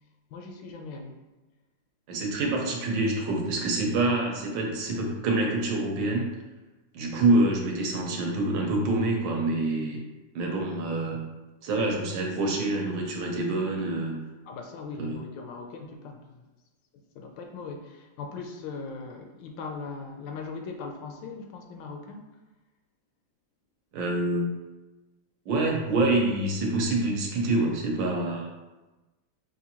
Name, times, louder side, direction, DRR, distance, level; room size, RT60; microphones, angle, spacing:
voice 1, 0.3-1.2 14.5-16.4 16.9-22.2, left 4 dB, 75° left, 3 dB, 1.2 m, -39 dB
voice 2, 2.1-6.3 6.9-10.0 10.3-11.3 11.6-14.2 15.0-15.2 23.9-24.5 25.5-28.5, right 2 dB, 75° right, 0 dB, 1.4 m, -26 dB
5.4 x 2.6 x 2.9 m, 1.1 s
omnidirectional pair, 2.1 m